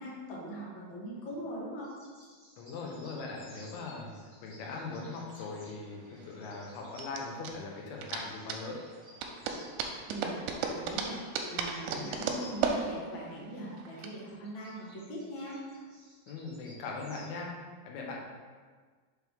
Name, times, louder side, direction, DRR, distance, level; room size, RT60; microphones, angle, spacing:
voice 1, 0.0-1.9 10.1-11.2 11.5-15.6, right 1 dB, 55° left, -6 dB, 1.4 m, -41 dB
sound 1, 1.8-9.7 10.9-12.8 14.1-17.4, equal, 45° right, 0.5 m, -57 dB
voice 2, 2.6-4.1 4.4-8.8 11.9-12.2 16.3-17.5 17.9-18.2, left 3 dB, 85° left, -1 dB, 2.8 m, -40 dB
sound 2, 5.2-14.1, right 5 dB, 90° right, 2.5 m, -36 dB
6.3 x 4.6 x 3.5 m, 1.5 s
omnidirectional pair, 4.3 m